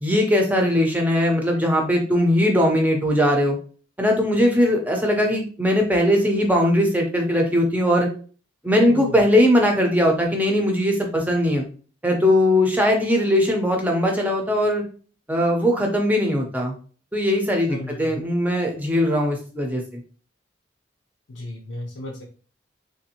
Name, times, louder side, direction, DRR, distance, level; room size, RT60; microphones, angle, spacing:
voice 1, 0.0-3.6 4.0-8.1 8.6-11.6 12.0-14.8 15.3-16.7 17.1-19.8, left 1 dB, 10° right, 1 dB, 0.6 m, -20 dB
voice 2, 8.9-9.2 17.7-18.2 21.3-22.4, left 2 dB, 85° left, -2 dB, 0.6 m, -35 dB
3.4 x 2.6 x 2.8 m, 0.40 s
head